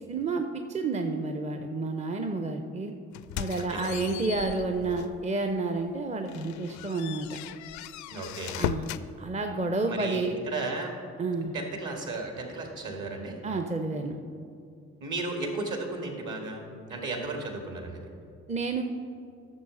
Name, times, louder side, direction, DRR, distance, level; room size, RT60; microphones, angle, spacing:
voice 1, 0.1-2.9 3.4-7.3 8.6-8.9 9.2-10.4 11.2-11.5 13.4-14.2 18.5-18.8, right 3 dB, 20° right, 5 dB, 0.6 m, -30 dB
sound 1, 3.1-5.2 5.7-5.8 6.3-9.1, left 12 dB, 50° left, 0.4 m, -37 dB
voice 2, 3.5-4.2 8.1-8.6 9.9-10.9 11.5-13.4 15.0-16.6 16.9-18.0, right 2 dB, 50° right, 2 dB, 1.9 m, -34 dB
13.5 x 6.8 x 3.8 m, 2.4 s
figure-of-eight pair, 40°, 38 cm